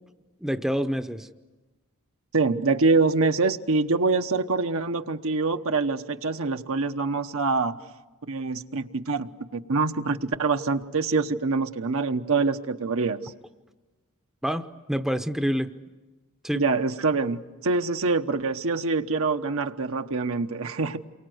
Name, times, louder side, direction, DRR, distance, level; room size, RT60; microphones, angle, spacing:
voice 1, 0.4-1.3 14.4-15.8 16.4-16.6, equal, ahead, 8 dB, 0.8 m, -27 dB
voice 2, 2.3-7.7 8.3-13.2 16.5-21.0, right 3 dB, 70° right, 7 dB, 1.1 m, -25 dB
29.0 x 23.5 x 7.9 m, 1.2 s
head